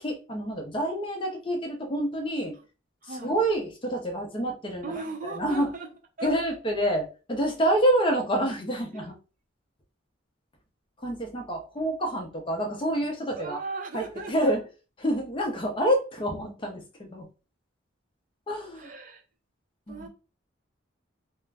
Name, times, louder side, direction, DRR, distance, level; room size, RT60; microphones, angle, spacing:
voice 1, 0.0-2.6 3.0-5.7 6.2-9.1 11.0-13.6 13.9-14.6 15.0-17.3 18.5-18.9 19.9-20.1, right 1 dB, 25° left, 0.5 m, -28 dB
voice 2, 3.0-3.3 4.8-5.9 6.2-6.3 8.9-9.1 13.4-14.5 18.7-19.2 19.9-20.1, right 3 dB, 40° right, 0.5 m, -37 dB
2.4 x 2.1 x 3.3 m
head